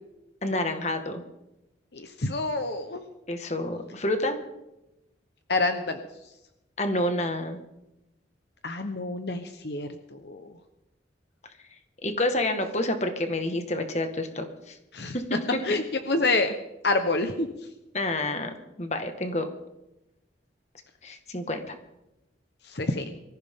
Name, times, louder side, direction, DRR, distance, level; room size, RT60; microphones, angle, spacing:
voice 1, 0.4-1.2 3.3-4.4 6.8-7.6 12.0-14.8 15.1-15.4 17.9-18.5 18.8-19.5 21.0-21.8, left 1 dB, 35° left, 6 dB, 1.7 m, -28 dB
voice 2, 1.9-3.0 5.5-6.0 8.6-10.6 14.9-15.2 15.6-16.5 16.8-17.5 22.6-23.1, left 2 dB, 65° left, 7 dB, 1.1 m, -27 dB
23.5 x 15.0 x 3.8 m, 0.92 s
head